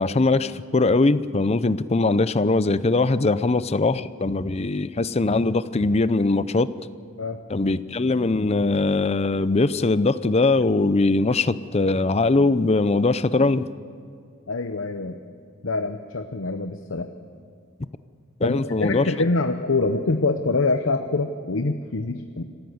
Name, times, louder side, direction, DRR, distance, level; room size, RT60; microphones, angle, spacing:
voice 1, 0.0-6.7 7.5-13.7 18.4-19.1, left 3 dB, 30° left, 15 dB, 0.6 m, -21 dB
voice 2, 14.5-15.2 15.6-17.1 18.4-22.4, left 3 dB, 80° left, 7 dB, 0.9 m, -25 dB
26.5 x 15.0 x 7.9 m, 2.2 s
head